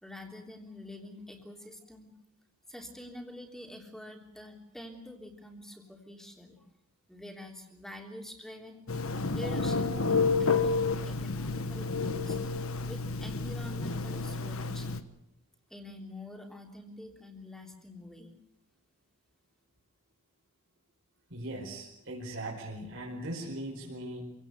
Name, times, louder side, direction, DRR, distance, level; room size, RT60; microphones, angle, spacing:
voice 1, 0.0-2.1 2.7-6.7 7.1-8.8 9.3-12.4 12.9-15.0 15.7-18.3, left 1 dB, ahead, 2 dB, 3.4 m, -46 dB
Telephone, 8.9-15.0, left 4 dB, 65° left, 1.3 m, -30 dB
voice 2, 21.3-24.2, right 1 dB, 55° right, -2 dB, 4.7 m, -39 dB
26.5 x 17.5 x 8.2 m, 0.83 s
head